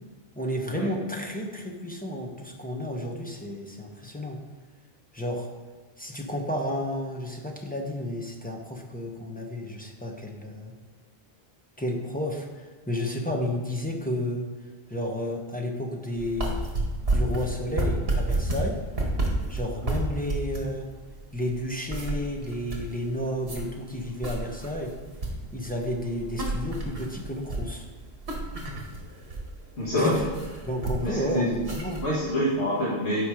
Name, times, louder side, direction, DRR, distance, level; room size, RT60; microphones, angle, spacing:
voice 1, 0.3-4.4 5.1-5.5 6.0-10.7 11.8-14.4 14.9-16.7 17.1-18.8 19.5-20.9 21.3-24.9 25.5-27.9 30.0-30.3 30.6-32.0, left 1 dB, 10° left, 1 dB, 0.9 m, -31 dB
sound 1, 16.2-32.2, right 2 dB, 65° right, 1.8 m, -31 dB
voice 2, 29.8-30.2 31.0-31.5 32.0-33.3, left 1 dB, 85° left, -7 dB, 1.8 m, -26 dB
8.7 x 5.1 x 4.9 m, 1.4 s
omnidirectional pair, 1.1 m